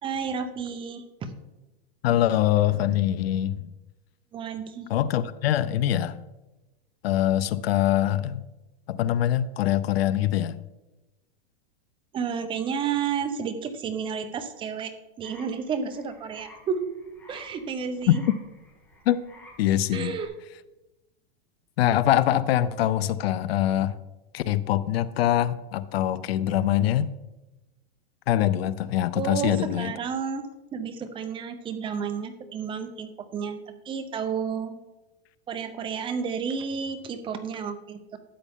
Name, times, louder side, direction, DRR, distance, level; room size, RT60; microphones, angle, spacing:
voice 1, 0.0-1.3 4.3-4.9 12.1-14.9 15.2-16.9 17.3-18.2 19.9-20.3 29.2-30.4 30.7-34.8 35.5-38.2, right 6 dB, 15° right, 8 dB, 0.7 m, -31 dB
voice 2, 2.0-3.7 4.9-6.1 7.0-8.4 8.9-10.5 18.1-18.2 19.1-19.2 19.6-20.1 21.8-24.0 24.3-27.1 28.3-29.9, left 12 dB, 75° left, 16 dB, 0.6 m, -23 dB
sound 1, 15.2-20.3, left 2 dB, 5° left, 2.3 m, -53 dB
12.5 x 8.1 x 3.6 m, 1.0 s
supercardioid pair, 155°, 31 cm